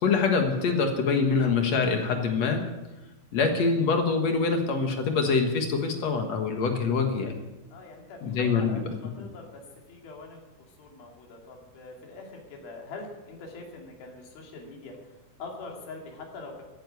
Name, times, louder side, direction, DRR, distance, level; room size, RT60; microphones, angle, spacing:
voice 1, 0.0-2.6 3.3-7.3 8.2-8.8, left 4 dB, 55° left, 4 dB, 2.4 m, -25 dB
voice 2, 7.7-9.6 9.9-10.4 10.8-16.6, left 3 dB, 90° left, 1 dB, 4.5 m, -43 dB
15.0 x 10.5 x 8.1 m, 1.1 s
omnidirectional pair, 4.1 m